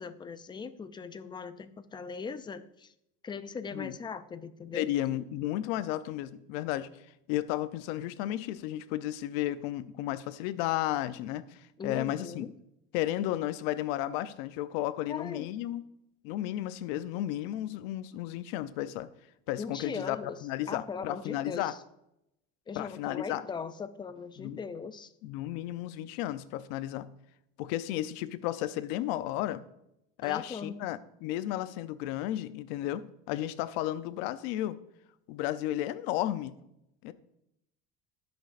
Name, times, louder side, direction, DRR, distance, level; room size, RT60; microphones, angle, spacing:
voice 1, 0.0-2.9 3.2-4.9 11.8-12.5 15.1-15.5 19.6-20.4 20.7-21.8 22.7-25.1 30.2-30.8, left 5 dB, 15° left, 12 dB, 0.4 m, -39 dB
voice 2, 4.7-6.9 7.3-12.5 12.9-15.8 16.2-19.1 19.5-21.7 22.7-23.4 24.4-24.6 25.2-27.1 27.6-29.6 30.2-34.8 35.3-36.5 37.0-37.1, left 13 dB, 80° left, 13 dB, 0.7 m, -33 dB
17.0 x 6.2 x 2.5 m, 0.82 s
cardioid pair, 135°, 31 cm